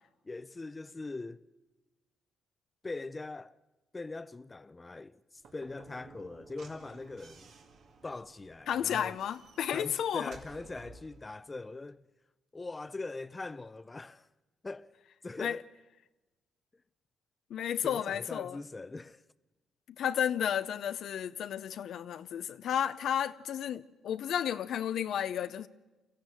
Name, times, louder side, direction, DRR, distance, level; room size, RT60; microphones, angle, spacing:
voice 1, 0.2-1.4 2.8-3.6 3.9-5.2 5.5-7.5 8.0-9.2 9.7-12.0 12.5-14.3 14.6-14.9 15.2-15.6 17.8-19.2, left 3 dB, 25° left, 0.7 m, -41 dB
Slam / Knock, 5.4-11.2, right 4 dB, 70° right, 2.4 m, -55 dB
voice 2, 8.7-10.3 15.4-15.6 17.5-18.6 20.0-25.7, left 9 dB, 70° left, 0.6 m, -32 dB
23.5 x 14.5 x 9.1 m
supercardioid pair, 70°, 0 cm